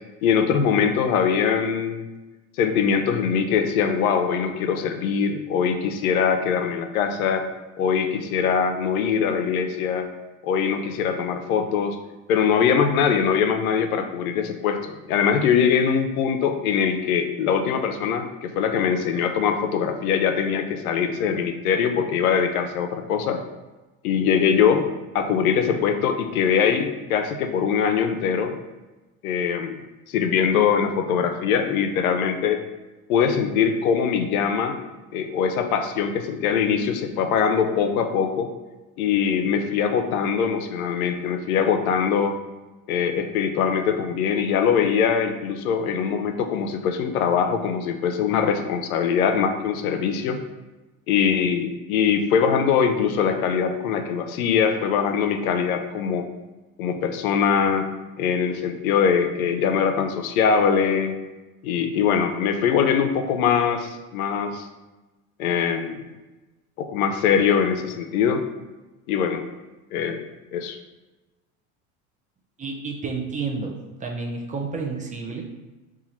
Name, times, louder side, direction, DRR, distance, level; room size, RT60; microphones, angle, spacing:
voice 1, 0.2-2.1 2.6-7.5 7.8-10.1 10.4-12.0 12.3-23.4 24.0-24.8 25.1-28.6 29.2-29.8 30.1-32.6 33.1-34.8 35.1-38.5 39.0-42.4 42.9-50.4 51.1-56.3 56.8-57.9 58.2-61.2 61.6-64.7 65.4-66.0 66.8-68.4 69.1-69.4 69.9-70.2 70.5-70.8, left 7 dB, 90° left, 6 dB, 0.5 m, -22 dB
voice 2, 72.6-73.7 74.0-75.4, right 4 dB, 20° right, 1 dB, 0.4 m, -30 dB
2.9 x 2.4 x 4.1 m, 1.1 s
hypercardioid pair, 90°, 42 cm